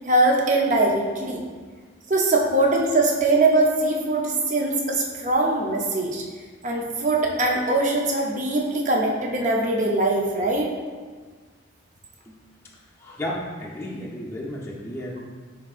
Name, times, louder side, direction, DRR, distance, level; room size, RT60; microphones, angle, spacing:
voice 1, 0.1-1.4 2.1-6.2 6.6-10.7, right 2 dB, 40° right, 0 dB, 0.6 m, -22 dB
voice 2, 13.0-15.2, left 1 dB, 15° left, -5 dB, 0.6 m, -33 dB
6.1 x 3.6 x 2.4 m, 1.5 s
head